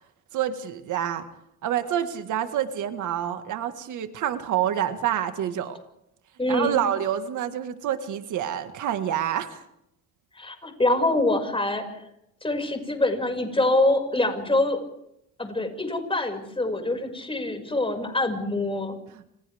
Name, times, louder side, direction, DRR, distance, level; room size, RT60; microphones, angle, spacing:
voice 1, 0.3-1.3 1.6-5.8 6.5-9.6 19.1-19.2, right 10 dB, 80° right, 8 dB, 1.8 m, -27 dB
voice 2, 6.4-6.8 10.4-11.8 12.4-14.8 15.4-19.0, left 2 dB, 20° left, 5 dB, 6.0 m, -25 dB
29.0 x 28.0 x 3.6 m, 0.77 s
cardioid pair, 90°, 30 cm